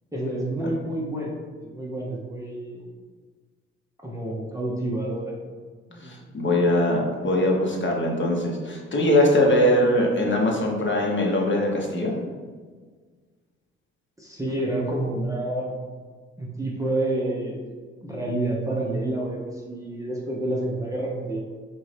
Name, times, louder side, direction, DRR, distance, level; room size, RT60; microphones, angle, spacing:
voice 1, 0.1-2.8 4.0-5.4 5.9-6.2 14.2-15.8 16.4-17.7 18.0-21.4, right 1 dB, 10° right, -4 dB, 0.7 m, -29 dB
voice 2, 6.0-12.1, left 1 dB, 30° left, -1 dB, 0.9 m, -21 dB
3.9 x 2.7 x 3.2 m, 1.5 s
hypercardioid pair, 50°, 35 cm